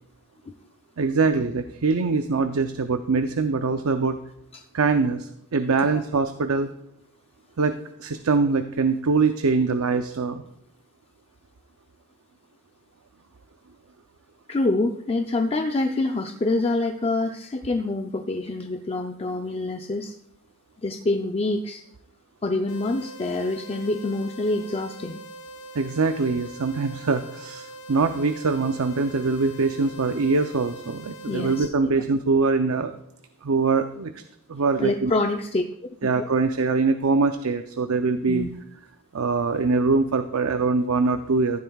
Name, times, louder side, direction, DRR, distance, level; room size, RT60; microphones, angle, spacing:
voice 1, 1.0-4.2 4.7-6.7 7.6-10.4 25.7-32.9 33.4-34.2 34.5-35.1 36.0-38.5 39.1-41.6, right 4 dB, 75° right, 8 dB, 0.6 m, -23 dB
voice 2, 14.5-20.1 20.8-21.8 22.4-25.2 31.3-31.7 34.8-35.6 36.2-36.3 38.3-38.5, left 2 dB, 30° left, 5 dB, 0.5 m, -26 dB
sound 1, 22.7-31.7, right 1 dB, 70° left, 0.8 m, -42 dB
14.5 x 11.0 x 2.4 m, 0.76 s
head